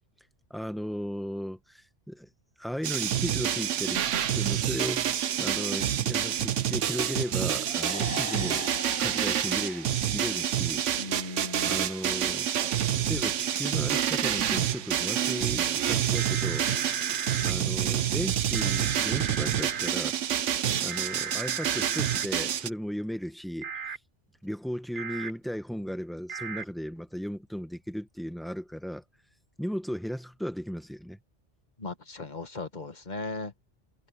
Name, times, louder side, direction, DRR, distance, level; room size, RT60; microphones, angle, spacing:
voice 1, 0.5-2.3 2.6-8.7 9.0-12.6 13.0-17.0 17.4-20.3 20.8-23.8 24.4-29.0 29.6-31.2, equal, ahead, 1.3 m, -36 dB
sound 1, 2.8-22.7, right 10 dB, 80° right, 1.2 m, -28 dB
sound 2, 7.7-11.1, left 4 dB, 70° left, 1.4 m, -42 dB
voice 2, 11.0-11.8 31.8-33.5, left 3 dB, 40° left, 2.0 m, -37 dB
sound 3, 16.1-17.5 18.5-19.9 20.9-22.2 23.6-24.0 25.0-25.3 26.3-26.6, right 6 dB, 50° right, 0.9 m, -36 dB
omnidirectional pair, 1.2 m